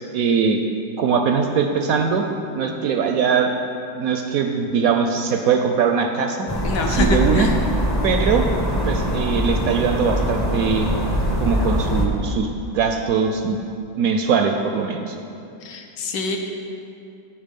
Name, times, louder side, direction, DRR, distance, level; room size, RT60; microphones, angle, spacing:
voice 1, 0.1-0.6 1.0-2.2 2.5-3.5 3.9-6.5 6.8-7.5 8.0-8.5 8.9-10.9 11.4-12.5 12.7-13.6 14.0-15.2, right 6 dB, 70° right, 4 dB, 0.8 m, -21 dB
sound 1, 6.5-12.1, equal, 20° left, 0.6 m, -22 dB
voice 2, 6.6-7.5 15.6-16.4, left 3 dB, 75° left, 3 dB, 1.5 m, -25 dB
13.0 x 4.8 x 5.2 m, 2.6 s
omnidirectional pair, 2.0 m